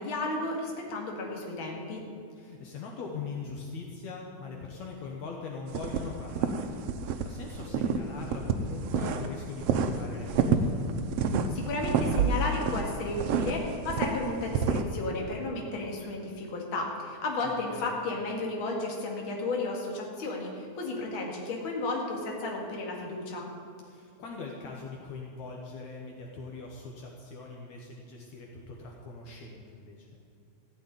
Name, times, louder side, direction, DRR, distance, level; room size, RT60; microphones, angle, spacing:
voice 1, 0.0-2.0 11.5-23.5, left 2 dB, 45° left, -1 dB, 2.5 m, -33 dB
voice 2, 2.3-10.8 17.4-17.8 23.9-30.2, left 4 dB, 70° left, 0 dB, 2.4 m, -41 dB
sound 1, 5.7-7.2 7.5-9.3 9.6-14.8, right 5 dB, 70° right, 1.5 m, -28 dB
14.5 x 6.6 x 9.5 m, 2.4 s
omnidirectional pair, 3.5 m